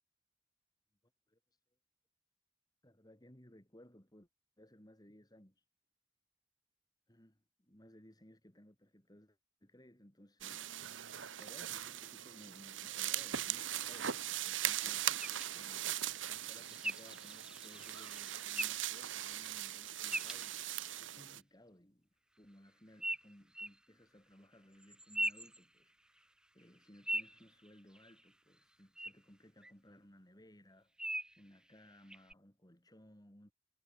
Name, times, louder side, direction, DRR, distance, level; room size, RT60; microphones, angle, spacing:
voice 1, 1.3-1.6 2.8-4.3 4.6-5.7 7.1-22.1 22.4-33.5, left 1 dB, 20° left, 4.9 m, -61 dB
sound 1, 10.4-21.4, right 12 dB, 75° right, 1.1 m, -40 dB
sound 2, 15.2-21.1 23.0-23.8 24.8-26.2 26.6-28.3 29.0-29.1 29.6-29.7 31.0-31.4 32.1-32.3, right 1 dB, 5° right, 1.1 m, -43 dB
head